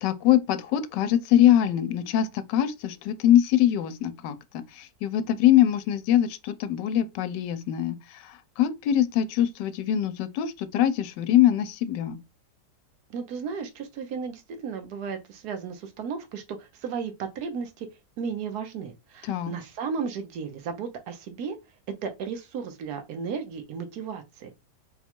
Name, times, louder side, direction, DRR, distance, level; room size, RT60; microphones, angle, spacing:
voice 1, 0.0-8.0 8.2-12.2 19.2-19.5, left 11 dB, 85° left, 1.2 m, -23 dB
voice 2, 13.1-17.9 18.2-21.6 22.0-24.5, right 6 dB, 70° right, 1.3 m, -34 dB
4.1 x 2.3 x 4.3 m
omnidirectional pair, 1.8 m